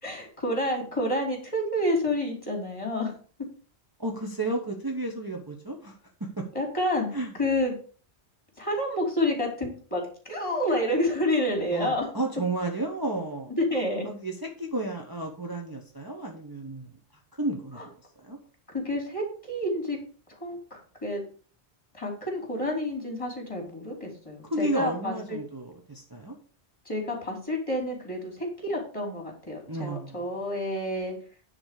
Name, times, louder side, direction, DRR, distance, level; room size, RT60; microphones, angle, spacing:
voice 1, 0.0-3.1 6.5-7.1 7.4-7.7 8.6-12.1 13.6-14.1 17.8-17.9 18.7-20.0 20.4-21.2 21.9-25.4 26.8-31.1, left 1 dB, 30° left, 1 dB, 3.1 m, -29 dB
voice 2, 4.0-6.4 7.1-7.3 11.7-13.5 14.0-16.9 17.4-17.8 18.2-18.4 24.5-26.3 29.7-30.2, right 2 dB, 20° right, 0 dB, 1.2 m, -32 dB
9.8 x 4.2 x 6.6 m, 0.41 s
omnidirectional pair, 1.1 m